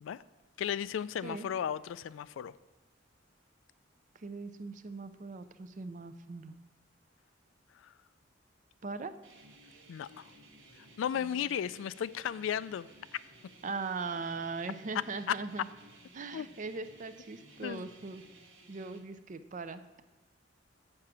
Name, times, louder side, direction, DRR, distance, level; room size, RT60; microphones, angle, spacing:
voice 1, 0.6-2.5 7.8-7.9 9.9-10.3 11.0-12.9 15.3-15.4 16.3-16.5 17.6-17.9, left 9 dB, 80° left, 18 dB, 0.3 m, -35 dB
voice 2, 4.2-6.5 8.8-9.1 13.6-15.7 16.1-18.2 18.7-20.0, right 4 dB, 40° right, 11 dB, 0.5 m, -40 dB
sound 1, 9.2-19.0, right 1 dB, 80° right, 1.2 m, -57 dB
6.6 x 5.7 x 7.2 m, 1.2 s
head